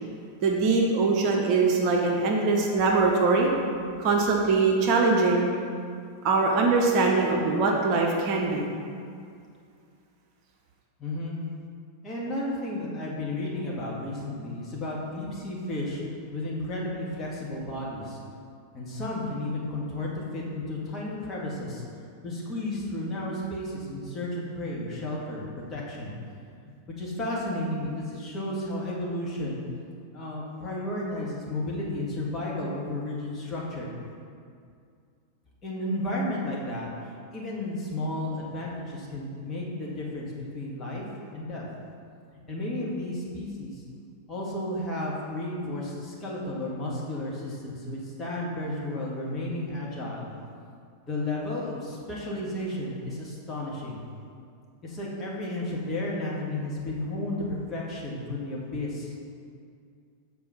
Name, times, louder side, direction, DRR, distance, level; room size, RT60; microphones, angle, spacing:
voice 1, 0.4-3.5 4.0-5.4 6.2-8.6, right 3 dB, 40° right, 0 dB, 1.0 m, -22 dB
voice 2, 11.0-11.4 12.0-16.0 16.3-18.2 18.7-21.8 22.2-26.1 27.0-29.6 30.1-33.9 35.6-41.0 41.3-41.6 42.5-43.8 44.3-50.3 51.0-54.0 54.8-59.1, left 1 dB, 25° left, -5 dB, 2.0 m, -33 dB
7.5 x 4.6 x 5.7 m, 2.3 s
figure-of-eight pair, 90°, 0 cm